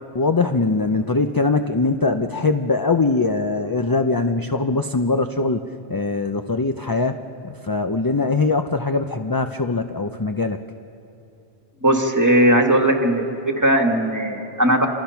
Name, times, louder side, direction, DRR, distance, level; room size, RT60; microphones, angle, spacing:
voice 1, 0.1-7.2 7.4-10.6, left 3 dB, 25° left, 6 dB, 0.5 m, -22 dB
voice 2, 11.8-14.9, right 1 dB, 15° right, 3 dB, 1.9 m, -18 dB
28.5 x 26.0 x 5.8 m, 2.8 s
omnidirectional pair, 1.1 m